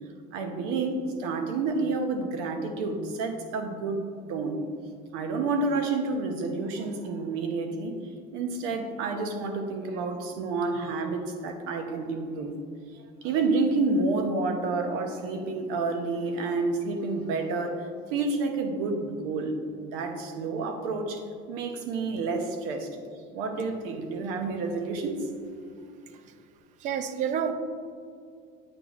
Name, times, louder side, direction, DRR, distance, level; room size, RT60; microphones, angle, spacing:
voice 1, 0.3-4.0 4.3-4.6 5.1-12.5 12.9-22.9 23.3-25.3, right 3 dB, 80° right, 6 dB, 0.9 m, -29 dB
voice 2, 26.8-27.5, right 8 dB, 35° right, 9 dB, 0.4 m, -28 dB
8.6 x 6.1 x 2.5 m, 2.3 s
cardioid pair, 165°, 21 cm